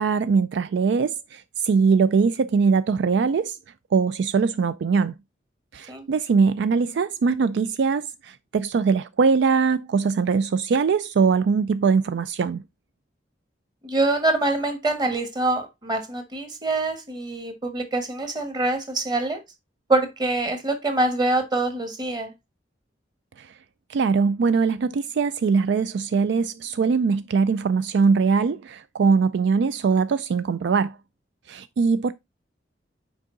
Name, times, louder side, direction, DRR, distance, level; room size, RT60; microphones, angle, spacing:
voice 1, 0.0-3.6 3.9-5.1 5.7-12.6 23.4-23.5 23.9-31.0 31.5-32.1, right 5 dB, 65° right, 0.4 m, -21 dB
voice 2, 13.8-19.4 19.9-22.3, right 2 dB, 25° right, 1.4 m, -25 dB
6.4 x 4.7 x 3.7 m
head